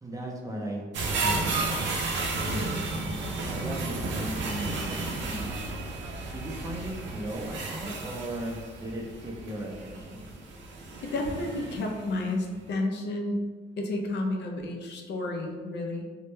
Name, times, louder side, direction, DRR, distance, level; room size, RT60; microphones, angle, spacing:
voice 1, 0.0-0.8 1.2-1.7 2.4-2.8 3.5-5.5 6.3-10.2, right 1 dB, 15° right, -2 dB, 0.5 m, -37 dB
sound 1, 0.9-12.2 12.6-12.7, right 3 dB, 70° right, 0.5 m, -33 dB
voice 2, 11.0-13.4 13.8-16.0, left 2 dB, 60° left, 1 dB, 0.4 m, -31 dB
2.1 x 2.1 x 3.0 m, 1.4 s
cardioid pair, 90°, 20 cm